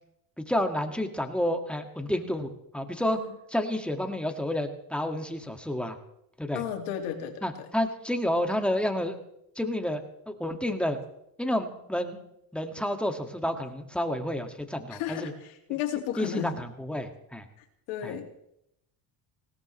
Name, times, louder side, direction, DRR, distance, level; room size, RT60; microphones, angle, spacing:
voice 1, 0.4-3.2 3.5-6.0 6.4-6.6 7.4-9.2 9.6-11.0 11.4-12.2 12.5-15.3 15.7-15.8 16.2-17.4 18.0-18.1, left 1 dB, ahead, 5 dB, 2.1 m, -30 dB
voice 2, 6.5-7.4 14.9-16.5 17.9-18.3, left 10 dB, 85° left, 3 dB, 2.6 m, -33 dB
19.5 x 17.5 x 3.3 m, 0.79 s
supercardioid pair, 80°, 48 cm